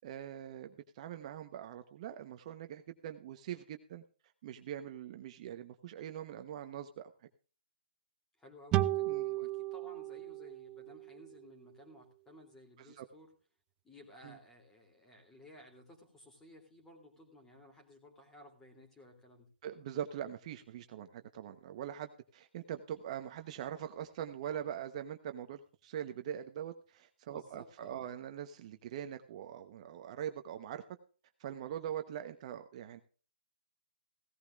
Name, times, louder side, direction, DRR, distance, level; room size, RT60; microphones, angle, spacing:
voice 1, 0.0-4.0 4.4-7.1 9.1-9.2 12.9-13.0 14.2-14.4 19.6-30.8 31.4-33.0, right 10 dB, 35° right, 7 dB, 0.9 m, -42 dB
voice 2, 8.4-13.3 13.8-19.5 27.3-28.0, left 1 dB, 10° left, 2 dB, 2.8 m, -57 dB
sound 1, 8.7-12.1, right 15 dB, 15° right, 0.5 m, -35 dB
16.5 x 14.5 x 2.4 m, 0.38 s
hypercardioid pair, 155°, 6 cm